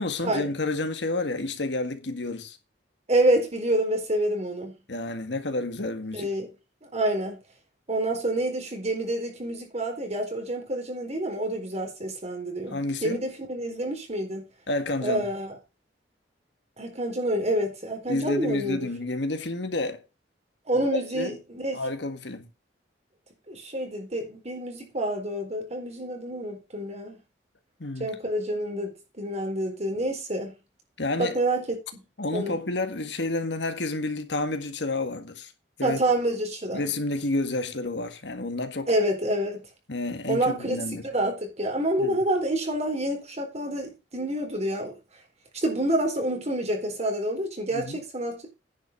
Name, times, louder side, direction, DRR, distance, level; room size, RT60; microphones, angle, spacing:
voice 1, 0.0-2.6 4.9-6.3 12.7-13.2 14.7-15.3 18.1-20.0 20.7-21.4 21.7-22.5 27.8-28.2 31.0-31.4 32.2-35.5 35.8-36.0 36.7-38.9 39.9-41.1 42.0-42.2 47.7-48.0, left 2 dB, 70° left, 1.8 m, -30 dB
voice 2, 3.1-4.7 6.1-6.5 6.8-7.4 7.9-14.4 15.0-15.6 16.8-18.8 20.7-21.8 23.5-27.2 28.0-30.5 31.2-31.6 31.9-32.0 32.3-32.6 35.8-36.9 38.9-39.6 40.3-40.8 41.0-44.9 45.6-48.5, right 1 dB, 40° right, 4.1 m, -28 dB
10.0 x 5.9 x 6.1 m
head